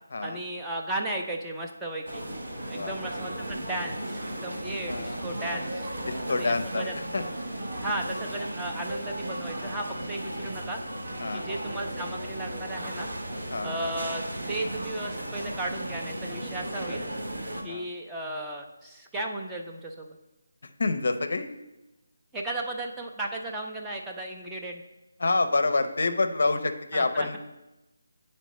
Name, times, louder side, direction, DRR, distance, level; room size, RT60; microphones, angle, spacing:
voice 1, 0.2-2.2 2.6-5.9 6.3-6.9 7.8-10.8 11.3-13.1 13.6-17.0 17.6-20.2 22.3-24.8 26.9-27.4, right 1 dB, 10° right, -1 dB, 0.5 m, -35 dB
sound 1, 2.1-17.6, right 1 dB, 70° right, 1.0 m, -35 dB
voice 2, 2.6-3.0 4.9-5.3 6.1-7.2 11.2-11.5 13.5-13.9 17.7-17.9 20.6-21.5 25.2-27.4, left 3 dB, 60° left, 8 dB, 0.5 m, -28 dB
9.0 x 4.3 x 3.0 m, 1.0 s
figure-of-eight pair, 155°, 0 cm